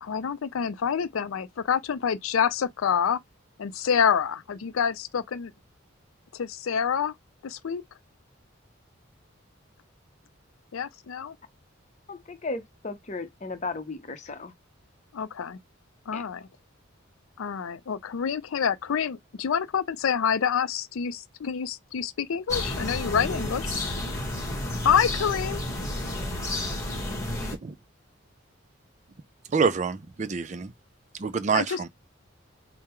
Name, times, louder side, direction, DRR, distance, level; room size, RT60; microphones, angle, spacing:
voice 1, 0.0-3.2 3.6-5.5 6.3-7.1 7.4-7.8 10.7-11.3 15.1-15.6 16.1-16.5 17.4-23.7 24.8-25.6 31.5-31.8, left 7 dB, 85° left, 0.4 m, -27 dB
voice 2, 12.1-14.5 16.1-16.2, left 3 dB, 35° left, 0.7 m, -35 dB
sound 1, 22.5-27.6, left 1 dB, 15° left, 1.4 m, -31 dB
voice 3, 29.5-30.7 31.2-31.9, right 5 dB, 35° right, 0.4 m, -26 dB
3.7 x 2.0 x 4.4 m
head